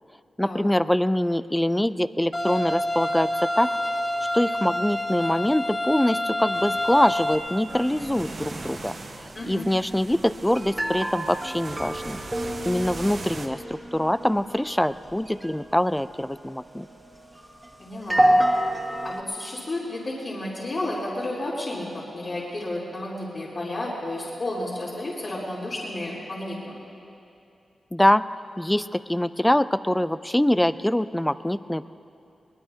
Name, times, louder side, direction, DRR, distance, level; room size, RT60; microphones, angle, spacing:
voice 1, 0.4-3.7 4.3-12.2 12.7-16.9 27.9-28.3 28.6-31.9, left 1 dB, 10° left, 15 dB, 0.4 m, -24 dB
sound 1, 2.3-7.4, left 1 dB, 25° left, 2.5 m, -27 dB
sound 2, 6.5-13.5, right 3 dB, 60° right, 1.3 m, -40 dB
sound 3, 7.7-19.2, right 1 dB, 15° right, 1.7 m, -29 dB
voice 2, 9.3-9.7 17.8-18.3 19.0-26.6, left 1 dB, 60° left, -9 dB, 3.6 m, -32 dB
22.5 x 20.5 x 2.8 m, 2.7 s
cardioid pair, 55°, 0 cm